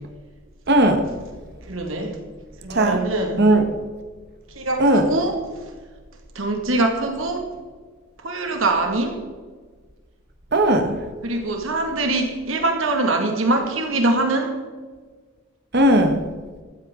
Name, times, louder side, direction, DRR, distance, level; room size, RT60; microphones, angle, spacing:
voice 1, 0.7-1.0 2.7-3.0 3.4-3.7 4.8-5.0 10.5-10.9 15.7-16.2, right 1 dB, 55° right, 6 dB, 1.4 m, -16 dB
voice 2, 1.7-2.2 2.6-3.5 4.5-5.4 6.3-7.5 8.2-9.2 11.2-14.5, right 2 dB, 90° right, 3 dB, 2.1 m, -23 dB
15.0 x 13.5 x 3.8 m, 1.5 s
head